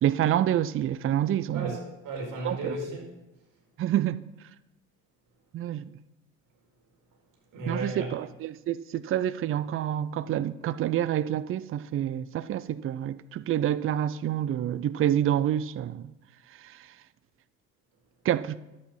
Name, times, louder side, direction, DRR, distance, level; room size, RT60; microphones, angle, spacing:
voice 1, 0.0-1.8 2.4-2.8 3.8-4.2 5.5-5.9 7.7-16.1 16.6-16.8 18.2-18.6, right 11 dB, 30° right, 0.5 m, -27 dB
voice 2, 1.5-3.1 7.5-8.1, right 2 dB, 50° right, 4.6 m, -34 dB
11.0 x 8.7 x 5.4 m
hypercardioid pair, 60°, 41 cm